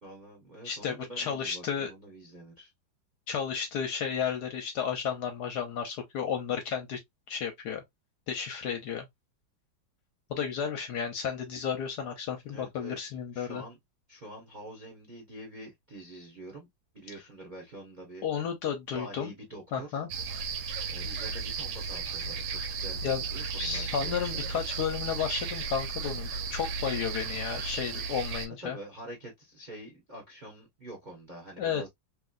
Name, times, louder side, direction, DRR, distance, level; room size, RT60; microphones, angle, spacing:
voice 1, 0.0-2.7 10.6-10.7 12.4-13.8 14.1-16.7 16.9-18.3 18.9-20.0 20.9-24.8 28.6-31.9, right 1 dB, 35° right, 0.7 m, -46 dB
voice 2, 0.6-1.9 3.3-7.0 7.3-7.8 8.3-9.0 10.3-13.6 18.2-19.3 19.7-20.1 23.0-23.2 23.5-28.8 31.6-31.8, left 7 dB, 70° left, 1.1 m, -32 dB
sound 1, 20.1-28.5, right 5 dB, 70° right, 1.2 m, -35 dB
3.1 x 2.9 x 2.4 m
omnidirectional pair, 2.2 m